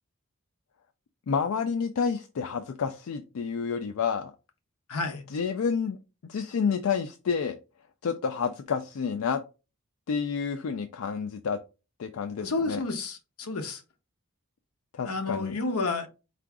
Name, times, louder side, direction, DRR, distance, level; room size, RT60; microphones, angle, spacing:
voice 1, 1.3-4.3 5.3-6.0 6.2-7.6 8.0-9.4 10.1-11.6 12.0-12.8 14.9-15.6, left 6 dB, 75° left, 0.4 m, -29 dB
voice 2, 4.9-5.2 12.4-13.8 15.0-16.1, left 3 dB, 90° left, 0.8 m, -30 dB
4.6 x 2.5 x 3.5 m
head